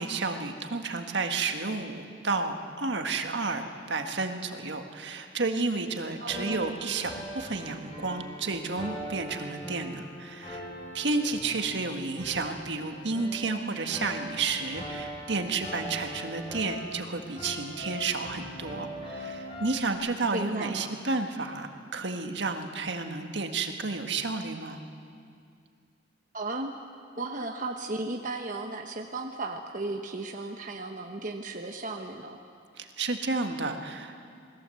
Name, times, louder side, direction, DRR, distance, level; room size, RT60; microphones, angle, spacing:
voice 1, 0.0-10.7 10.9-24.8 32.8-34.2, right 3 dB, 65° right, 5 dB, 1.7 m, -31 dB
voice 2, 6.2-6.6 20.3-20.9 26.3-26.7 27.2-32.4, right 2 dB, 45° right, 3 dB, 1.1 m, -35 dB
sound 1, 6.3-19.9, equal, 30° left, 7.9 m, -41 dB
28.5 x 20.5 x 7.8 m, 2.4 s
head